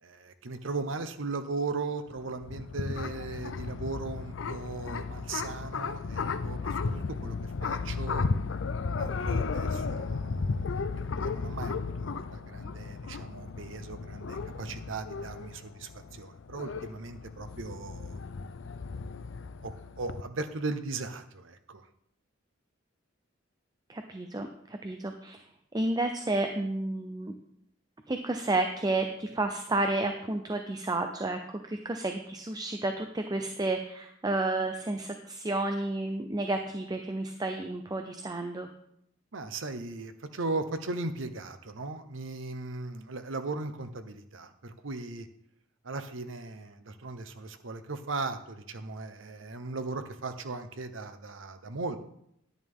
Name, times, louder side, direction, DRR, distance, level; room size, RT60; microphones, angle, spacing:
voice 1, 0.0-8.3 9.0-10.7 11.2-18.2 19.6-21.8 39.3-45.3 45.8-52.0, right 3 dB, 90° right, 10 dB, 0.9 m, -37 dB
sound 1, 2.1-20.2, left 4 dB, 75° left, 0.5 m, -34 dB
voice 2, 23.9-25.4 25.7-27.3 28.1-38.7, right 2 dB, 20° right, 5 dB, 0.6 m, -31 dB
10.5 x 10.0 x 3.6 m, 0.75 s
head